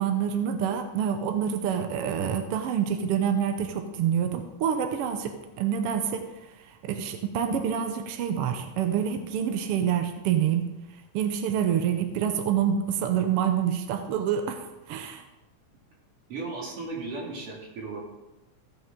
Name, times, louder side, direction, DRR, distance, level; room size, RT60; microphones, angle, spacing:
voice 1, 0.0-6.2 6.8-10.7 11.1-14.6 14.9-15.2, right 8 dB, 80° right, 6 dB, 1.3 m, -27 dB
voice 2, 16.3-18.0, right 3 dB, 50° right, -2 dB, 2.9 m, -35 dB
15.5 x 6.2 x 3.7 m, 1.0 s
omnidirectional pair, 3.6 m